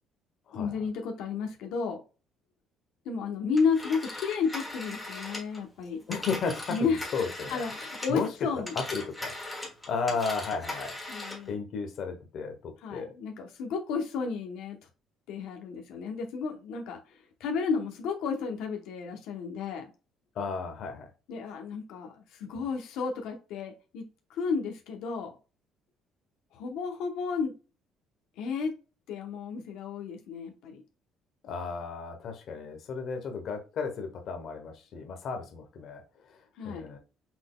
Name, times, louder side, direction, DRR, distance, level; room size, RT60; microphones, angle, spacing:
voice 1, 0.5-2.0 3.0-6.0 6.7-7.0 7.5-8.7 11.1-11.6 12.8-14.8 15.3-19.9 21.3-25.3 26.5-27.5 28.4-28.7 29.1-30.8 36.6-36.9, left 5 dB, 80° left, 3 dB, 0.9 m, -32 dB
Telephone, 3.6-8.3 8.6-11.5, left 1 dB, 5° left, 1.3 m, -39 dB
voice 2, 6.1-8.3 8.5-11.0 11.5-13.1 20.3-21.1 31.4-36.0 36.3-36.4 36.6-37.0, left 5 dB, 50° left, 5 dB, 1.0 m, -34 dB
5.9 x 3.9 x 2.2 m, 0.33 s
cardioid pair, 160°, 0 cm